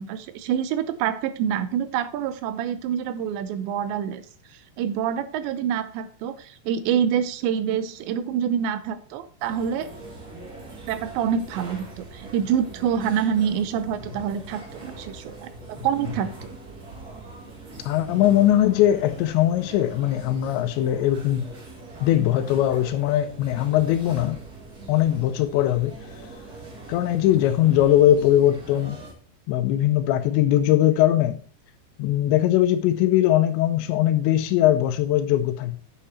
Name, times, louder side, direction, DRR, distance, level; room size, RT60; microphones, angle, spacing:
voice 1, 0.0-4.2 4.8-9.9 10.8-16.5, right 8 dB, 85° right, 12 dB, 3.0 m, -26 dB
sound 1, 9.4-29.1, right 2 dB, 35° right, 1.6 m, -41 dB
voice 2, 17.9-21.5 22.0-24.4 24.9-26.0 26.9-29.0 29.5-31.4 32.0-35.8, left 12 dB, 85° left, 9 dB, 2.9 m, -20 dB
8.8 x 7.3 x 4.2 m, 0.40 s
omnidirectional pair, 5.1 m